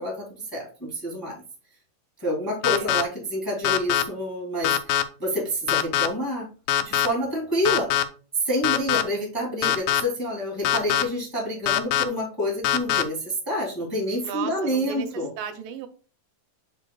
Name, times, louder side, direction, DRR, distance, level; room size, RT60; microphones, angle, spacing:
voice 1, 0.0-1.4 2.2-6.5 6.8-7.9 8.4-15.3, equal, 5° left, 2.1 m, -28 dB
sound 1, 2.6-3.0 3.6-4.0 4.6-5.0 5.7-6.1 6.7-7.1 7.6-8.0 8.6-9.0 9.6-10.0 10.6-11.0 11.7-12.0 12.6-13.0, left 12 dB, 85° left, 2.4 m, -22 dB
voice 2, 14.2-15.9, right 7 dB, 80° right, 2.5 m, -35 dB
7.9 x 6.2 x 2.3 m
omnidirectional pair, 4.0 m